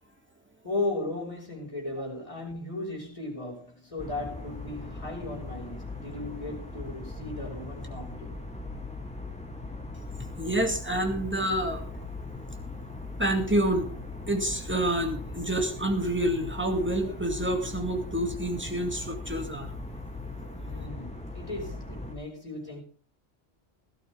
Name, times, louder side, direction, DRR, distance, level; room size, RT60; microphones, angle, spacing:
voice 1, 0.6-8.4 20.7-22.8, left 2 dB, 30° left, 5.7 m, -36 dB
sound 1, 4.0-22.1, left 2 dB, 5° left, 2.6 m, -39 dB
voice 2, 10.4-11.8 13.2-13.9 14.3-19.7, right 1 dB, 10° right, 2.4 m, -28 dB
17.0 x 13.0 x 3.6 m
omnidirectional pair, 1.1 m